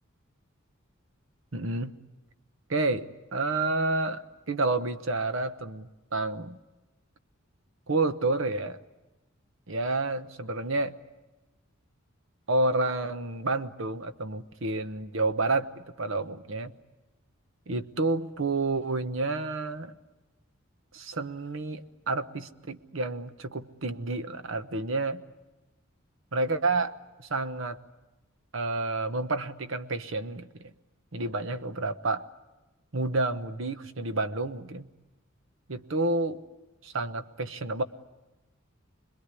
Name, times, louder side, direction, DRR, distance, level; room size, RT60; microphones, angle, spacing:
voice 1, 1.5-2.0 2.7-6.6 7.9-8.8 9.7-11.0 12.5-16.7 17.7-19.9 20.9-25.2 26.3-27.8 28.5-30.7 31.1-32.3 32.9-34.9 35.7-36.4 36.8-37.8, right 2 dB, 65° right, 11 dB, 1.1 m, -30 dB
26.5 x 21.0 x 9.8 m, 1.1 s
head